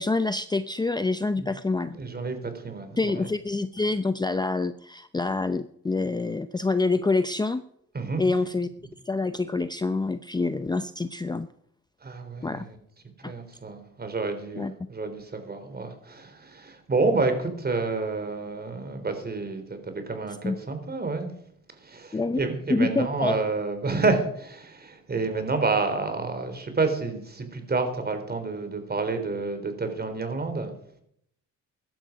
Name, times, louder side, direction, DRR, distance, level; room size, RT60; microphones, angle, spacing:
voice 1, 0.0-2.0 3.0-7.6 8.2-8.7 9.1-11.5 12.4-12.7 13.2-13.3 14.6-14.7 20.4-20.6 22.1-22.4 22.7-23.3, left 3 dB, 15° left, 12 dB, 0.6 m, -26 dB
voice 2, 1.9-3.3 7.9-8.2 12.0-12.8 13.2-21.3 21.8-30.7, right 3 dB, 30° right, 7 dB, 3.8 m, -29 dB
15.0 x 12.0 x 5.2 m, 0.70 s
cardioid pair, 90°, 30 cm